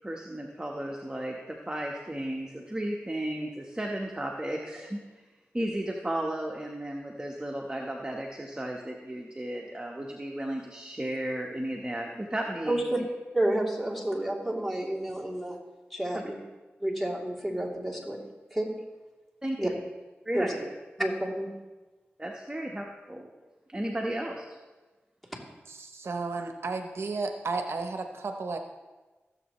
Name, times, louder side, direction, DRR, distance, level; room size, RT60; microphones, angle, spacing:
voice 1, 0.0-5.0 5.5-13.0 16.1-16.2 19.4-19.7 20.2-20.7 22.2-23.3 23.7-24.6, right 1 dB, 20° right, 0 dB, 1.2 m, -34 dB
voice 2, 12.7-13.0 13.3-15.6 15.9-16.4 16.8-18.2 18.5-18.7 19.6-19.7 20.3-20.5 21.0-21.5, right 1 dB, ahead, -4 dB, 3.0 m, -30 dB
voice 3, 25.7-28.6, right 3 dB, 70° right, 6 dB, 0.7 m, -33 dB
16.0 x 7.5 x 3.1 m, 1.2 s
cardioid pair, 45°, 4 cm